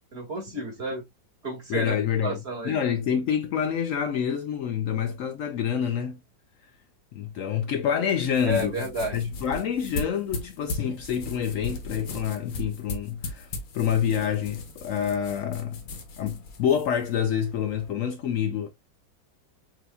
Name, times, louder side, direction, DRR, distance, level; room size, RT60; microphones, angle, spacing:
voice 1, 0.1-1.0 1.4-2.0 2.2-2.8 8.4-9.2, right 1 dB, 35° right, 2.0 m, -31 dB
voice 2, 1.7-2.4 2.6-6.2 7.1-8.8 9.1-13.5 13.7-15.8 16.2-18.7, left 8 dB, 80° left, 0.7 m, -27 dB
sound 1, 8.2-17.9, left 2 dB, 55° left, 1.2 m, -38 dB
6.2 x 2.8 x 2.3 m
omnidirectional pair, 2.0 m